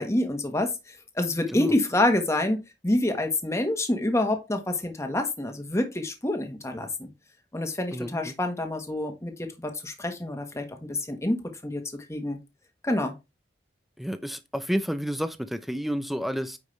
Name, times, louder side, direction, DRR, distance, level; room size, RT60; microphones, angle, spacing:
voice 1, 0.0-7.1 7.5-12.4 12.8-13.1, left 1 dB, 15° left, 1.4 m, -27 dB
voice 2, 7.9-8.4 14.0-16.6, equal, ahead, 0.7 m, -30 dB
9.3 x 5.2 x 3.3 m
head